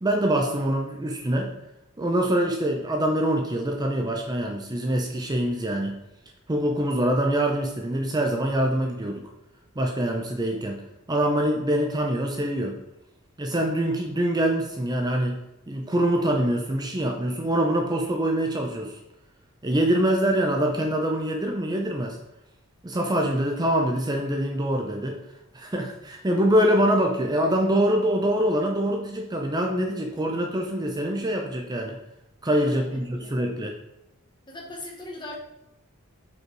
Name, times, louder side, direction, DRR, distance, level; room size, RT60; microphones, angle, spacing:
voice 1, 0.0-1.5 2.0-6.0 6.5-9.2 9.8-10.8 11.1-12.8 13.4-15.4 15.7-19.0 19.6-22.2 22.8-25.2 25.5-32.0 32.4-33.7, right 1 dB, 20° right, 2 dB, 0.6 m, -24 dB
voice 2, 32.7-33.3 34.5-35.4, left 2 dB, 20° left, -1 dB, 1.4 m, -40 dB
5.3 x 4.3 x 4.6 m, 0.89 s
head